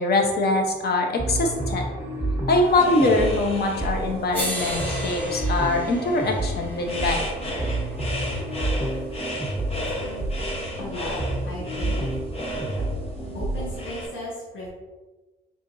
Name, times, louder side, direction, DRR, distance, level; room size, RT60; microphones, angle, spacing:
voice 1, 0.0-1.8 2.5-7.2, left 2 dB, 55° left, 2 dB, 0.9 m, -23 dB
sound 1, 1.2-14.0, right 1 dB, 15° right, 1.2 m, -30 dB
sound 2, 2.6-14.1, left 1 dB, 30° left, 1.1 m, -34 dB
sound 3, 3.7-3.8 4.3-8.5 9.9-10.0, right 1 dB, 10° left, 1.2 m, -36 dB
voice 2, 10.8-11.2 11.4-12.0 13.3-14.7, left 1 dB, 75° left, -6 dB, 1.2 m, -35 dB
4.5 x 3.5 x 2.7 m, 1.2 s
cardioid pair, 90°, 20 cm